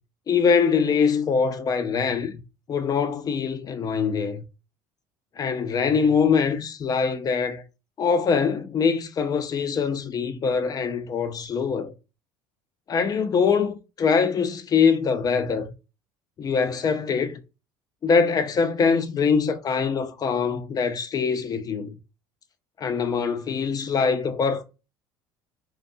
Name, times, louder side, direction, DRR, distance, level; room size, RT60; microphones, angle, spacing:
voice 1, 0.3-2.4 2.7-4.4 5.4-7.6 8.0-11.9 12.9-15.7 16.4-17.4 18.0-22.0 22.8-24.6, left 5 dB, 35° left, 0.4 m, -23 dB
2.5 x 2.1 x 2.6 m
supercardioid pair, 90°, 11 cm